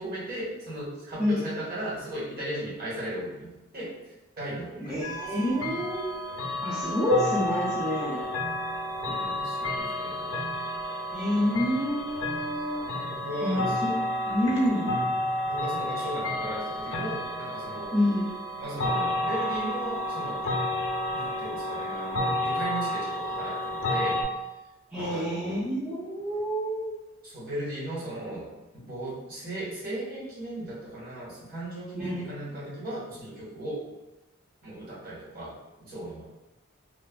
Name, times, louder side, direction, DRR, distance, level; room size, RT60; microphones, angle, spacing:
voice 1, 0.0-3.9 4.4-5.0 9.0-10.3 11.3-11.4 13.0-13.7 14.9-17.9 18.6-20.5 21.1-24.2 24.9-25.6 27.2-33.8 34.6-36.2, right 1 dB, 45° right, -8 dB, 1.1 m, -37 dB
voice 2, 4.8-6.1 6.6-8.2 11.1-12.9 13.4-14.0 14.2-15.0 17.9-18.3 24.9-26.9 32.0-32.2, left 1 dB, 5° right, -11 dB, 0.4 m, -28 dB
sound 1, 5.0-24.2, left 1 dB, 60° left, 0.5 m, -31 dB
3.2 x 2.1 x 2.2 m, 0.99 s
head